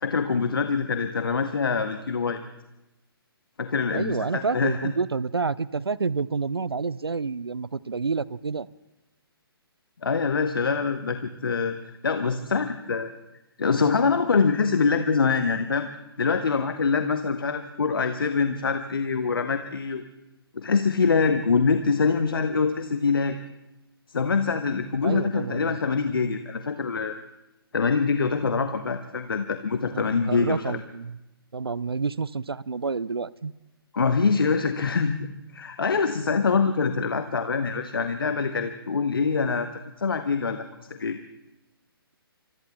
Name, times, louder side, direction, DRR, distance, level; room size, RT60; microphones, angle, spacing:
voice 1, 0.0-2.4 3.6-4.8 10.0-11.8 12.0-13.1 13.6-15.9 16.2-20.0 20.5-23.4 24.1-27.2 27.7-30.8 33.9-35.3 35.5-39.7 40.0-41.2, left 5 dB, 60° left, 9 dB, 0.9 m, -24 dB
voice 2, 3.9-8.7 25.0-26.1 29.9-31.2 31.5-33.5, right 4 dB, 75° right, 21 dB, 0.5 m, -29 dB
26.0 x 24.0 x 2.3 m, 0.96 s
figure-of-eight pair, 130°, 13 cm